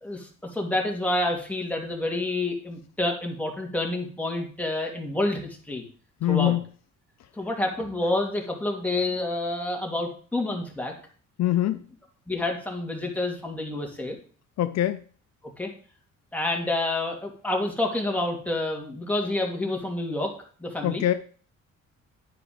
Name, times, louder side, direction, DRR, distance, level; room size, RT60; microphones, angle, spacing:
voice 1, 0.0-5.8 6.3-6.6 7.4-10.9 12.3-14.2 15.6-15.7 16.3-20.3 20.6-21.0, left 2 dB, 5° left, 0 dB, 2.5 m, -28 dB
voice 2, 6.2-6.6 11.4-11.8 14.6-15.0 20.8-21.1, left 13 dB, 60° left, 10 dB, 0.5 m, -23 dB
9.9 x 5.0 x 5.0 m, 0.43 s
cardioid pair, 90°, 30 cm